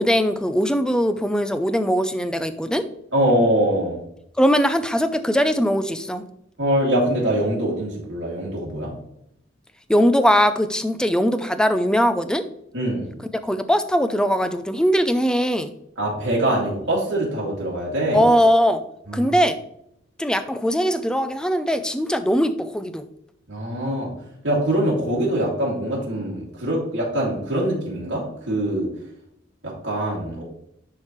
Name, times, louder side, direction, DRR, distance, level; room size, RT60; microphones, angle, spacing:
voice 1, 0.0-2.8 4.4-6.2 9.9-12.4 13.3-15.7 18.1-18.8 19.1-19.6 20.2-23.1, equal, 5° left, 10 dB, 0.4 m, -20 dB
voice 2, 3.1-4.0 6.6-8.9 12.7-13.1 16.0-18.2 19.1-19.3 23.5-24.1 24.4-28.9 29.6-30.4, right 1 dB, 65° right, -5 dB, 2.5 m, -23 dB
10.5 x 3.8 x 3.1 m, 0.75 s
head